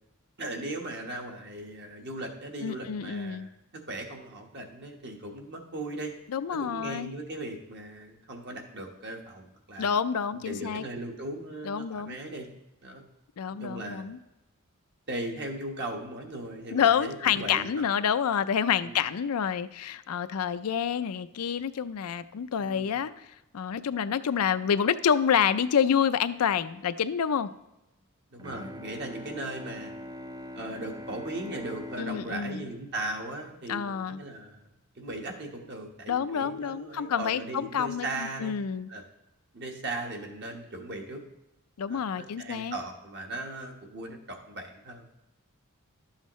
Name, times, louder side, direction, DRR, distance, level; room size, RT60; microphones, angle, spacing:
voice 1, 0.4-6.1 6.6-9.9 10.3-12.5 12.8-13.0 13.6-14.0 15.1-17.8 18.8-19.0 22.6-22.9 28.3-29.9 30.5-34.6 35.0-38.5 38.9-39.0 39.5-41.2 41.9-45.1, right 2 dB, 50° right, 2 dB, 1.3 m, -38 dB
voice 2, 2.6-3.5 6.3-7.1 9.8-10.8 11.6-12.2 13.4-14.2 16.7-23.2 23.5-27.5 32.0-32.7 33.7-34.2 36.1-38.9 41.8-42.8, left 7 dB, 80° left, 12 dB, 0.4 m, -28 dB
Bowed string instrument, 28.4-34.0, left 1 dB, 15° right, 0.4 m, -43 dB
11.5 x 7.3 x 3.1 m, 0.94 s
head